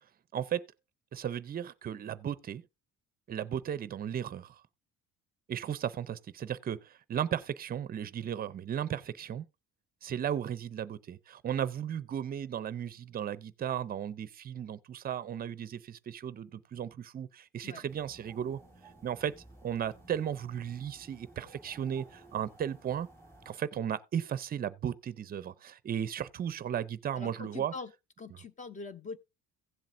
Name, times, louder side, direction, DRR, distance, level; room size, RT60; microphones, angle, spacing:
voice 1, 0.3-0.6 1.1-2.6 3.3-4.6 5.5-9.4 10.0-18.6 19.0-19.3 19.6-23.1 23.5-27.7, right 9 dB, 30° right, 0.5 m, -35 dB
sound 1, 17.9-23.6, right 2 dB, 10° left, 2.5 m, -56 dB
voice 2, 27.1-27.9 28.2-29.2, left 4 dB, 25° left, 0.7 m, -43 dB
16.0 x 7.5 x 2.6 m
cardioid pair, 165°, 29 cm